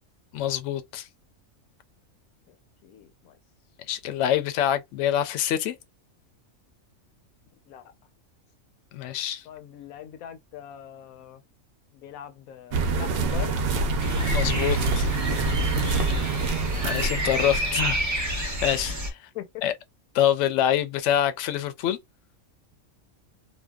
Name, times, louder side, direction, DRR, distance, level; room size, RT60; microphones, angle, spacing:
voice 1, 0.3-1.1 3.9-5.7 8.9-9.4 14.3-15.1 16.8-19.2 19.6-19.7 20.1-22.0, left 11 dB, 70° left, 0.8 m, -26 dB
voice 2, 2.8-3.4 7.7-7.9 9.4-11.4 11.9-13.7 16.5-16.7 19.3-19.5, left 10 dB, 85° left, 1.1 m, -42 dB
sound 1, 12.7-18.0, right 3 dB, 60° right, 0.6 m, -26 dB
sound 2, 14.0-19.1, equal, 25° right, 0.4 m, -29 dB
2.7 x 2.2 x 2.2 m
omnidirectional pair, 1.4 m